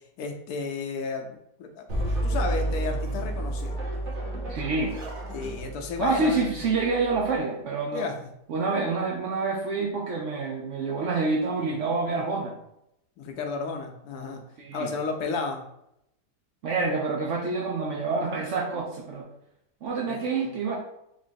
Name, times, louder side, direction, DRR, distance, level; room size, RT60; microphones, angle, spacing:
voice 1, 0.2-3.8 5.3-6.6 7.9-8.1 13.2-14.4 14.7-15.6 20.1-20.2, left 4 dB, 70° left, 3 dB, 1.1 m, -32 dB
sound 1, 1.9-7.4, right 1 dB, 50° right, 1.1 m, -31 dB
voice 2, 4.5-5.0 6.0-8.1 8.5-12.5 14.6-14.9 16.6-19.3 19.8-20.8, right 4 dB, 70° right, -1 dB, 0.7 m, -27 dB
3.7 x 3.3 x 2.6 m, 0.79 s
omnidirectional pair, 1.8 m